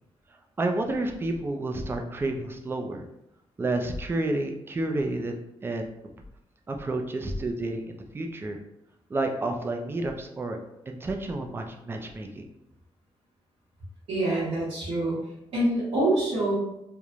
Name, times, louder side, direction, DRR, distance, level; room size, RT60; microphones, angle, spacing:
voice 1, 0.6-3.0 3.6-5.9 6.7-8.6 9.1-10.6 10.9-12.4, right 2 dB, 20° right, 3 dB, 0.4 m, -30 dB
voice 2, 14.1-15.2 15.5-16.6, right 1 dB, 90° right, -11 dB, 1.1 m, -25 dB
3.0 x 2.1 x 2.4 m, 0.84 s
cardioid pair, 120°, 10 cm